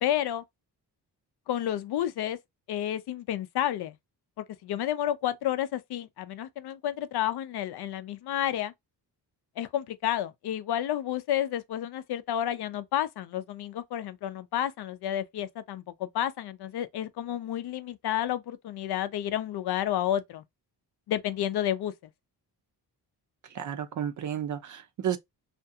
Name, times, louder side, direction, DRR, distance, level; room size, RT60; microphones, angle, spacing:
voice 1, 0.0-0.4 1.5-2.4 2.7-3.9 4.4-8.7 9.6-20.4 21.1-21.9, left 11 dB, 70° left, 0.5 m, -30 dB
voice 2, 23.5-25.2, right 9 dB, 45° right, 0.5 m, -32 dB
2.5 x 2.3 x 2.6 m
cardioid pair, 110°, 41 cm